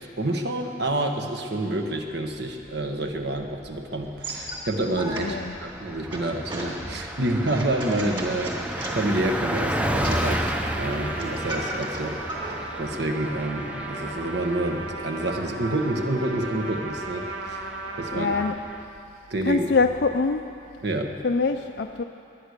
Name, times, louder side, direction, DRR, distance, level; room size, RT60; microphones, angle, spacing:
voice 1, 0.2-10.4 10.7-18.3 19.3-19.7 20.8-21.2, right 1 dB, 70° right, 3 dB, 1.5 m, -28 dB
Car passing by, 3.2-3.8 4.1-4.3 4.6-18.8, equal, 5° right, 0.6 m, -33 dB
sound 1, 4.0-12.6, right 1 dB, 25° right, 2.5 m, -36 dB
voice 2, 5.2-5.6 18.1-18.6 19.4-20.5 21.2-22.0, left 4 dB, 65° left, 6 dB, 0.5 m, -24 dB
Trumpet, 10.0-18.5, right 3 dB, 85° right, 1.6 m, -36 dB
21.5 x 9.9 x 6.7 m, 2.7 s
head